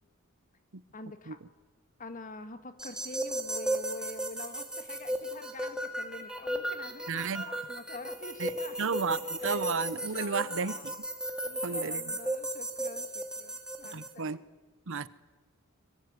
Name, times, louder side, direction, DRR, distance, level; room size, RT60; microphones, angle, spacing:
voice 1, 0.9-1.4 2.0-9.0 9.4-10.9 11.4-14.4, left 2 dB, 40° left, 10 dB, 2.1 m, -46 dB
sound 1, 2.8-14.1, right 1 dB, 5° right, 2.9 m, -35 dB
voice 2, 7.1-7.4 8.4-8.5 8.8-10.9 11.6-12.2 13.9-14.4 14.9-15.1, right 5 dB, 60° right, 17 dB, 0.9 m, -33 dB
25.0 x 23.5 x 9.7 m, 1.2 s
head